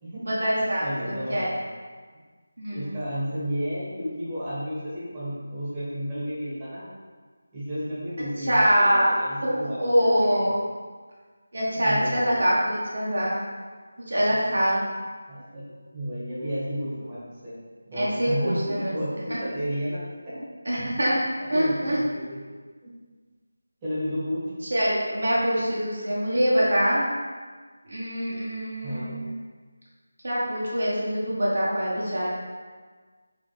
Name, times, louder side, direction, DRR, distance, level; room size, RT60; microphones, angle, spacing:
voice 1, 0.3-1.6 2.6-2.9 8.5-9.1 9.4-9.5 9.8-10.5 11.5-13.4 14.1-14.8 18.0-18.9 20.6-21.2 21.5-22.0 24.7-27.1 27.9-29.3 30.2-32.3, equal, 60° right, -6 dB, 1.1 m, -24 dB
voice 2, 0.8-1.7 2.7-6.9 7.5-10.4 11.8-12.3 14.3-14.5 15.3-17.5 17.9-20.4 21.4-22.4 22.8-22.9 23.8-24.4 28.8-29.2, equal, 15° right, -11 dB, 1.4 m, -32 dB
5.1 x 3.2 x 3.2 m, 1.5 s
figure-of-eight pair, 160°, 0 cm